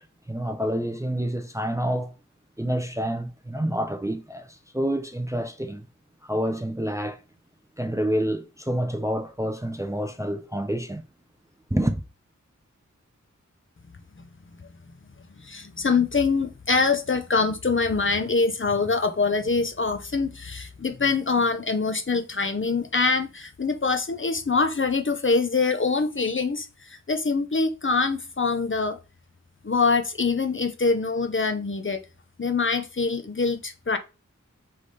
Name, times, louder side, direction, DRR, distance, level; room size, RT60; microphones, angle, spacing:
voice 1, 0.0-2.1 2.6-5.9 6.2-7.2 7.8-11.0 11.7-12.0, equal, 10° right, 0.5 m, -28 dB
voice 2, 15.4-29.0 29.6-32.0 32.4-34.0, left 4 dB, 40° left, 0.6 m, -24 dB
4.0 x 3.4 x 3.2 m
wide cardioid pair, 50°, 31 cm